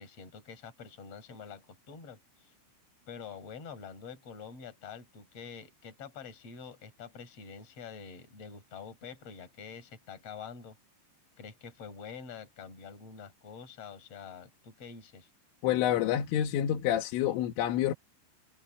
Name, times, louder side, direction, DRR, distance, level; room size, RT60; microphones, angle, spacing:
voice 1, 0.0-2.5 3.1-10.8 11.4-15.3, left 6 dB, 30° left, 5.9 m, -46 dB
voice 2, 15.6-17.9, left 11 dB, 85° left, 4.2 m, -28 dB
omnidirectional pair, 5.6 m